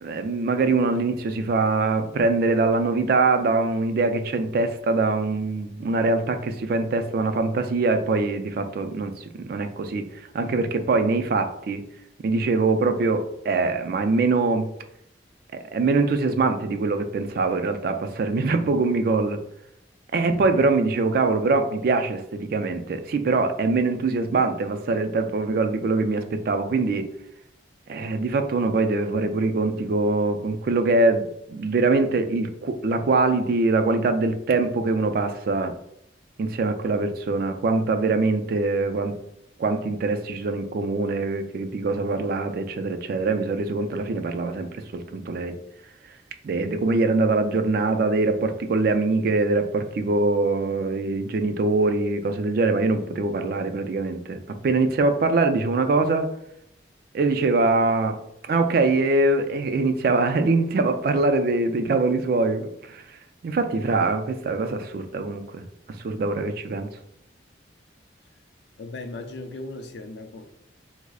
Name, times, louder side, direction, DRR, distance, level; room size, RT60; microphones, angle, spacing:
voice 1, 0.0-11.8 12.2-14.7 15.7-19.4 20.1-27.1 27.9-35.7 36.4-39.2 39.6-45.6 46.4-56.3 57.1-58.2 58.5-63.0 63.4-65.6 66.0-66.9, right 3 dB, 55° right, 0.3 m, -23 dB
voice 2, 68.8-70.5, left 2 dB, 65° left, 0.4 m, -37 dB
4.7 x 2.0 x 2.3 m
head